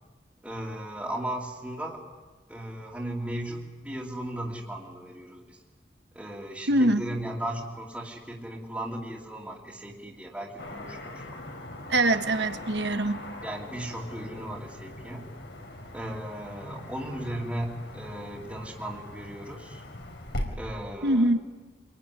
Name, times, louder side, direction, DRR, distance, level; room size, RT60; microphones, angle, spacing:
voice 1, 0.4-2.0 2.5-5.6 6.1-11.4 12.1-12.2 13.4-15.3 15.9-19.8 20.5-21.3, right 1 dB, 10° right, -4 dB, 2.6 m, -36 dB
voice 2, 6.7-7.0 11.9-13.2 21.0-21.4, right 1 dB, 70° right, 9 dB, 1.5 m, -23 dB
Car passing by / Traffic noise roadway noise, 10.6-20.5, left 1 dB, 70° left, 4.3 m, -41 dB
25.5 x 22.5 x 10.0 m, 1.2 s
head